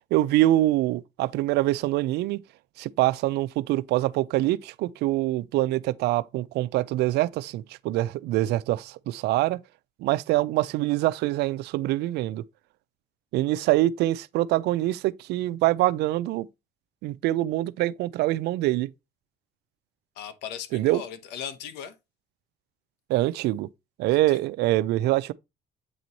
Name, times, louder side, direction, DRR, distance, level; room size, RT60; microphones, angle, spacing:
voice 1, 0.1-2.4 2.8-9.6 10.0-12.4 13.3-16.5 17.0-18.9 20.7-21.0 23.1-23.7 24.0-25.3, right 16 dB, 80° right, 0.4 m, -24 dB
voice 2, 20.2-21.9 24.1-24.4, left 8 dB, 85° left, 0.9 m, -38 dB
8.3 x 3.1 x 3.9 m
cardioid pair, 110°, 17 cm